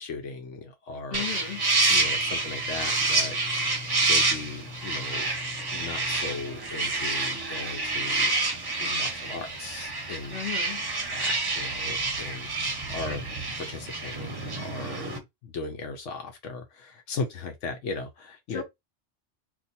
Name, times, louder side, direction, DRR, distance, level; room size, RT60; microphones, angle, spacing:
voice 1, 0.0-1.2 1.9-3.4 4.0-5.3 5.7-10.4 11.1-13.2 13.6-18.6, left 4 dB, 85° left, 1.1 m, -37 dB
voice 2, 1.1-1.6 10.3-10.8 18.5-18.6, left 9 dB, 55° left, 1.0 m, -35 dB
sound 1, 1.1-15.2, right 2 dB, 25° right, 0.7 m, -28 dB
2.9 x 2.3 x 4.0 m
omnidirectional pair, 1.2 m